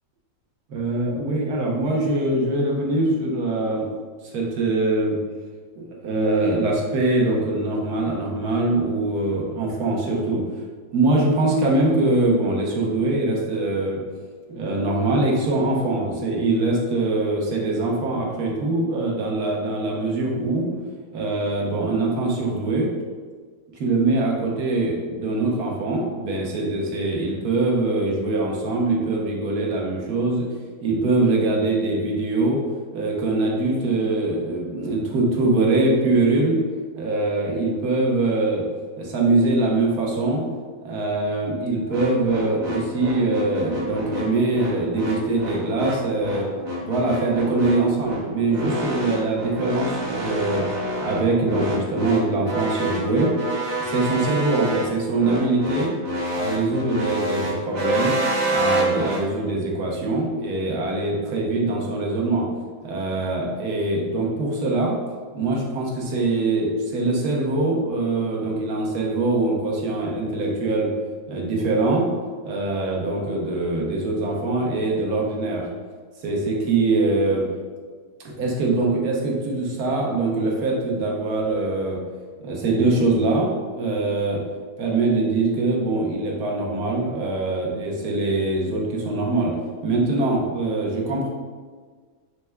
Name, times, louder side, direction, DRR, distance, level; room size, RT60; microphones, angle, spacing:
voice 1, 0.7-3.9 4.3-5.2 5.8-10.4 10.9-14.0 14.5-20.7 21.1-22.9 23.7-30.5 30.8-32.6 32.9-36.6 36.9-38.6 39.0-40.4 40.8-46.5 46.8-53.3 53.8-55.9 56.3-58.2 58.5-62.4 62.8-65.0 65.3-70.9 71.3-72.1 72.4-75.7 76.2-77.5 78.2-82.0 82.4-84.4 84.8-89.6 89.8-91.3, right 2 dB, 75° right, -2 dB, 1.4 m, -23 dB
sound 1, 41.9-59.2, right 1 dB, 50° right, 1.3 m, -27 dB
5.8 x 3.3 x 2.2 m, 1.5 s
omnidirectional pair, 1.7 m